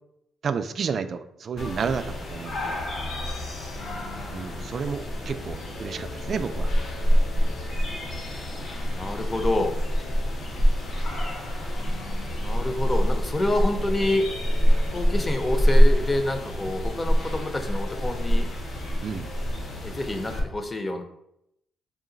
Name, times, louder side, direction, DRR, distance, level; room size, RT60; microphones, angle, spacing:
voice 1, 0.4-2.8 4.3-6.7 19.0-19.3, right 6 dB, 50° right, 10 dB, 0.3 m, -31 dB
sound 1, 1.6-20.4, equal, 60° left, 1.0 m, -25 dB
sound 2, 2.0-19.8, left 4 dB, 90° left, 0.7 m, -47 dB
voice 2, 8.9-9.7 12.4-14.3 14.9-18.5 19.8-21.0, left 1 dB, 25° left, 6 dB, 0.6 m, -27 dB
3.8 x 2.5 x 3.9 m, 0.79 s
cardioid pair, 90°, 0 cm